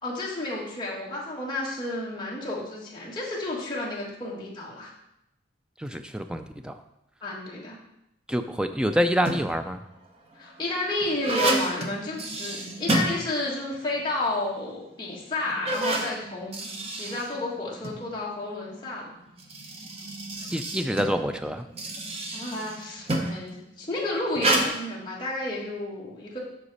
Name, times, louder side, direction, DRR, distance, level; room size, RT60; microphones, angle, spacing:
voice 1, 0.0-4.9 7.2-7.8 10.3-16.6 17.0-19.1 22.3-26.4, left 2 dB, 25° left, -5 dB, 1.7 m, -31 dB
voice 2, 5.8-6.8 8.3-9.8 20.5-21.6, equal, 5° right, 7 dB, 0.3 m, -27 dB
sound 1, 9.0-9.7 10.3-13.8 14.1-14.2 14.9-15.0 15.5-18.0 19.2-23.5 24.3-24.7, right 2 dB, 30° right, 0.8 m, -29 dB
8.1 x 5.9 x 4.1 m, 0.83 s
head